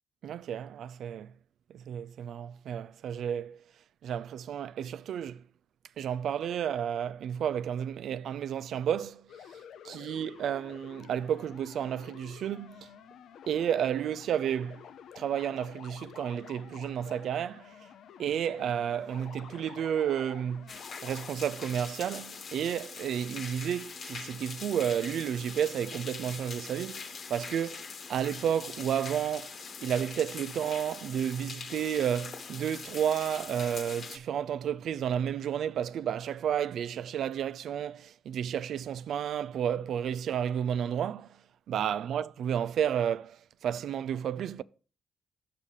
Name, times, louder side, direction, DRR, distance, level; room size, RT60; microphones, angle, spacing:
voice 1, 0.2-1.3 1.7-3.6 4.0-5.4 6.0-9.3 9.8-13.0 13.5-14.8 15.2-17.9 18.2-20.7 21.0-29.5 29.8-41.4 41.7-44.6, right 9 dB, 75° right, 0.3 m, -32 dB
sound 1, 9.3-21.3, left 8 dB, 75° left, 0.5 m, -50 dB
sound 2, 20.7-34.2, left 5 dB, 55° left, 1.2 m, -43 dB
5.5 x 5.1 x 6.5 m
cardioid pair, 70°, 0 cm